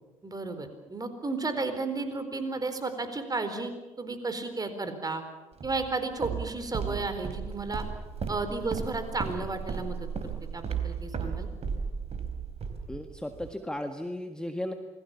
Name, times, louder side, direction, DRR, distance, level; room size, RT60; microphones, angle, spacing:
voice 1, 0.2-3.7 4.0-5.2 5.6-7.9 8.3-11.5, right 3 dB, 25° right, 9 dB, 4.3 m, -33 dB
Walk footsteps, 5.6-13.5, right 6 dB, 40° right, 3.7 m, -35 dB
voice 2, 12.9-14.7, left 1 dB, 5° left, 6 dB, 1.7 m, -35 dB
28.0 x 21.0 x 7.3 m, 1.2 s
figure-of-eight pair, 55°, 17 cm